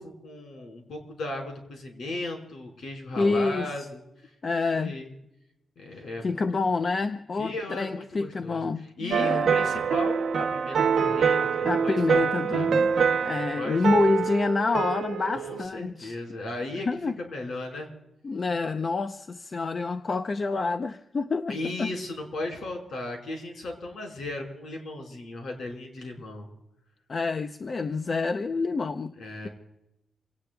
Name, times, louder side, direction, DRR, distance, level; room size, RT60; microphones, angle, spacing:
voice 1, 0.0-4.3 4.7-5.1 5.8-6.4 7.4-8.6 9.0-12.7 13.2-14.0 15.4-17.9 21.5-26.5 29.2-29.5, left 2 dB, 65° left, 2 dB, 4.8 m, -36 dB
voice 2, 3.2-3.7 4.4-5.0 6.2-9.5 11.6-12.9 13.2-16.2 16.8-17.1 18.2-21.9 27.1-29.2, left 3 dB, 35° left, 8 dB, 0.6 m, -27 dB
sound 1, 9.1-15.6, right 6 dB, 70° right, 0.8 m, -25 dB
27.5 x 18.5 x 2.3 m, 0.88 s
wide cardioid pair, 135°, 0 cm